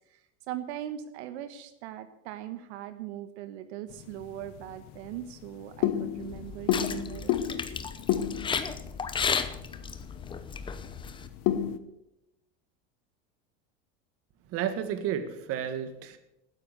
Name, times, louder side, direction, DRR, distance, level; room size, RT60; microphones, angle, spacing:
voice 1, 0.1-7.6, right 11 dB, 80° right, 10 dB, 1.3 m, -40 dB
sound 1, 3.9-11.8, left 11 dB, 60° left, 1.1 m, -33 dB
sound 2, 6.2-11.3, left 6 dB, 15° left, 0.7 m, -34 dB
voice 2, 14.5-16.2, right 9 dB, 45° right, 10 dB, 1.7 m, -32 dB
12.5 x 9.9 x 8.0 m, 0.85 s
supercardioid pair, 145°, 33 cm